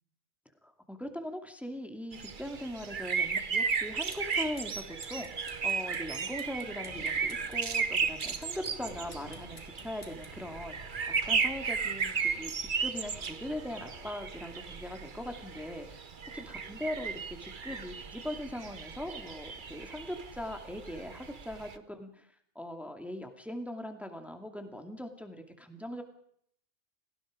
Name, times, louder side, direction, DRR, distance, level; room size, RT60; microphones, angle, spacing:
voice 1, 0.6-22.3 22.5-26.0, left 1 dB, ahead, 5 dB, 2.4 m, -41 dB
sound 1, 2.1-21.8, right 5 dB, 45° right, 1.2 m, -35 dB
sound 2, 4.0-10.4, left 2 dB, 85° left, 3.6 m, -55 dB
sound 3, 6.8-14.6, left 2 dB, 65° left, 3.5 m, -55 dB
28.5 x 18.5 x 5.1 m, 0.67 s
omnidirectional pair, 1.2 m